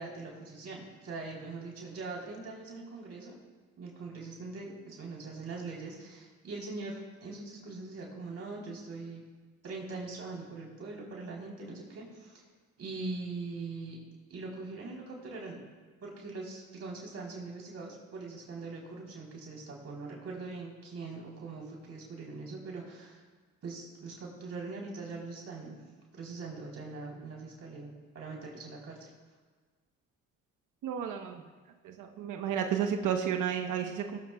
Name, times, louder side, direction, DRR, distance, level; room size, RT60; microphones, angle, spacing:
voice 1, 0.0-3.4 3.8-9.2 9.6-12.4 12.8-14.0 14.3-15.6 16.0-23.2 23.6-25.8 26.1-29.1, right 3 dB, 55° right, -2 dB, 3.9 m, -42 dB
voice 2, 30.8-31.4 31.8-34.2, right 8 dB, 85° right, 4 dB, 1.1 m, -32 dB
18.0 x 17.5 x 2.4 m, 1.4 s
cardioid pair, 90°, 30 cm